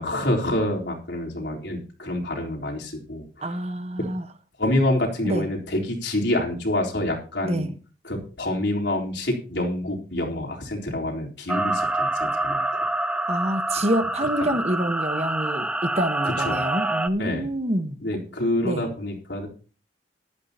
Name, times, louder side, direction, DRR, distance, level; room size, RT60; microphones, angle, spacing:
voice 1, 0.0-3.6 4.6-7.7 8.0-12.6 13.1-13.2 14.4-14.5 16.2-16.7 17.2-17.5 18.0-19.5, left 1 dB, 80° left, 3.9 m, -27 dB
voice 2, 3.4-4.2 5.2-5.5 7.4-7.7 13.3-18.0 18.6-18.9, right 1 dB, 35° right, 1.2 m, -26 dB
sound 1, 11.5-17.1, right 2 dB, 5° right, 0.6 m, -26 dB
15.0 x 12.0 x 2.9 m
head